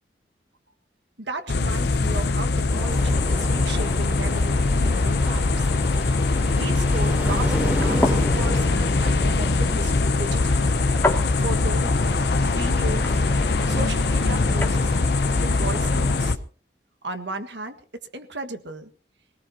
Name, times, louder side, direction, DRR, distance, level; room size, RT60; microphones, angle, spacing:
voice 1, 1.2-5.7 6.5-10.8 11.3-11.9 12.5-13.2 13.6-14.9 15.3-16.4 17.0-18.9, right 2 dB, 75° right, 8 dB, 1.6 m, -35 dB
sound 1, 1.5-16.4, left 3 dB, 60° left, 0.6 m, -22 dB
sound 2, 2.7-16.3, equal, 10° right, 3.4 m, -34 dB
sound 3, 7.7-14.8, left 2 dB, 10° left, 2.2 m, -32 dB
22.5 x 18.5 x 2.8 m, 0.40 s
head